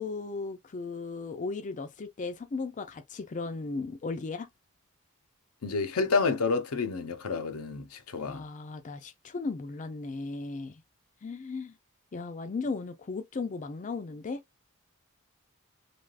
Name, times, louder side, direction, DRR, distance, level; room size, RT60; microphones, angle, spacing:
voice 1, 0.0-4.5 8.2-10.8 11.2-11.7 12.1-14.4, left 3 dB, 35° left, 0.4 m, -36 dB
voice 2, 5.6-8.4, left 4 dB, 85° left, 0.7 m, -29 dB
3.4 x 2.3 x 2.3 m
head